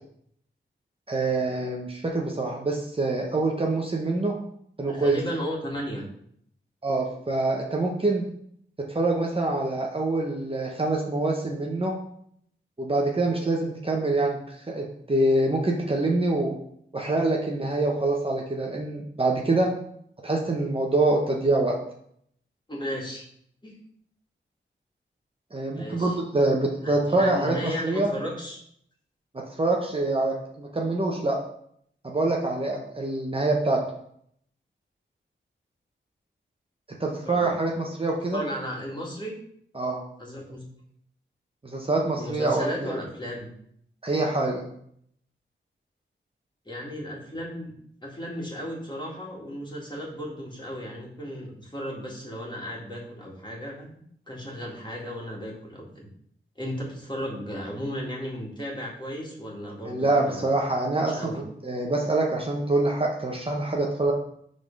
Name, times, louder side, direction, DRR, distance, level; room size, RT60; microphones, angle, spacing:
voice 1, 1.1-4.3 4.8-5.2 6.8-8.2 8.8-12.0 12.8-16.6 16.9-19.7 20.2-21.8 25.5-28.1 29.3-31.4 32.0-33.8 37.0-38.4 39.7-40.0 41.6-42.7 44.0-44.6 59.8-61.3 61.6-64.1, right 2 dB, 25° right, -1 dB, 0.8 m, -25 dB
voice 2, 4.9-6.1 22.7-23.3 23.6-23.8 25.7-26.2 26.8-28.6 37.3-37.5 38.3-39.4 40.2-40.6 42.2-43.5 46.7-47.7 48.0-56.1 56.6-60.5 61.1-61.4, equal, 20° left, -4 dB, 2.0 m, -35 dB
5.3 x 3.8 x 5.2 m, 0.68 s
wide cardioid pair, 85°, 21 cm